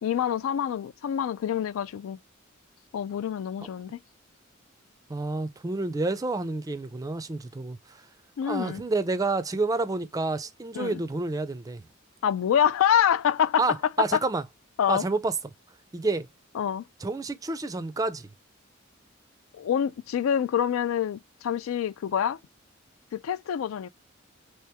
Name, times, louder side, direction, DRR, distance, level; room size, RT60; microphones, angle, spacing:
voice 1, 0.0-2.2 2.9-4.0 8.4-8.8 10.7-11.0 12.2-13.6 14.8-15.0 16.6-16.8 19.5-22.4 23.1-23.9, left 9 dB, 85° left, 0.3 m, -26 dB
voice 2, 5.1-8.0 8.4-11.8 13.6-14.4 14.9-15.3 15.9-16.3 17.0-18.3, right 3 dB, 15° right, 0.4 m, -29 dB
3.2 x 2.9 x 3.4 m
head